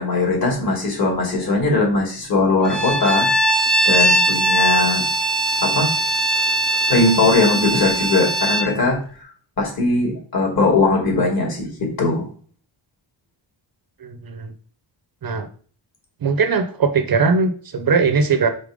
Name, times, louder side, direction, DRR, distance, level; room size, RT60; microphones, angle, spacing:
voice 1, 0.0-3.3 3.8-5.1 5.6-5.9 6.9-9.3 9.6-12.3, left 3 dB, 45° left, -2 dB, 2.8 m, -19 dB
Bowed string instrument, 2.6-8.7, right 1 dB, ahead, 0.5 m, -20 dB
voice 2, 14.0-14.5 15.2-15.5 16.2-18.5, right 5 dB, 45° right, 8 dB, 0.8 m, -19 dB
5.2 x 4.5 x 5.0 m, 0.43 s
wide cardioid pair, 145°, 49 cm